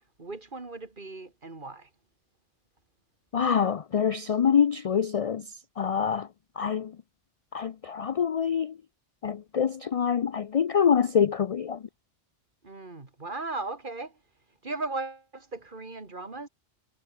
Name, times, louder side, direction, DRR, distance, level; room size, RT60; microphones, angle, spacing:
voice 1, 0.2-1.9 12.6-14.2 14.6-16.5, right 3 dB, 45° right, 2.5 m, -37 dB
voice 2, 3.3-5.4 5.8-6.3 6.6-6.9 7.5-8.7 9.2-11.8, left 7 dB, 60° left, 0.3 m, -25 dB
omnidirectional pair, 1.2 m